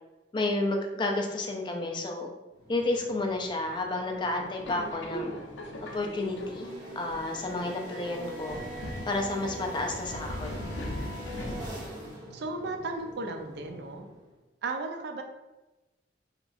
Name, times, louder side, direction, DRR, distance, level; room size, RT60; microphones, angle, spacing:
voice 1, 0.3-2.3 2.7-5.3 5.9-8.6 9.0-10.5, left 2 dB, 25° left, 2 dB, 0.3 m, -31 dB
sound 1, 2.5-14.4, equal, 25° right, 1.1 m, -45 dB
Subway metro underground, 4.6-12.1, equal, 85° left, 0.5 m, -40 dB
voice 2, 12.3-14.1 14.6-15.2, right 3 dB, 60° right, 4 dB, 0.4 m, -35 dB
2.9 x 2.3 x 2.5 m, 1.1 s
head